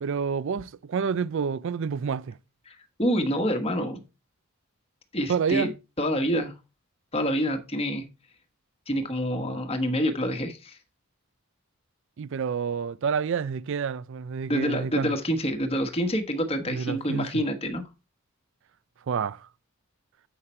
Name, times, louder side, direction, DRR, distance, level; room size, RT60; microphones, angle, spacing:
voice 1, 0.0-2.4 5.3-5.7 12.2-15.1 16.7-17.3 19.1-19.5, right 6 dB, 60° right, 0.4 m, -28 dB
voice 2, 2.7-4.0 5.1-5.7 6.0-6.5 7.1-8.0 8.9-10.8 14.5-17.8, equal, 25° left, 1.3 m, -27 dB
8.1 x 5.7 x 4.3 m
head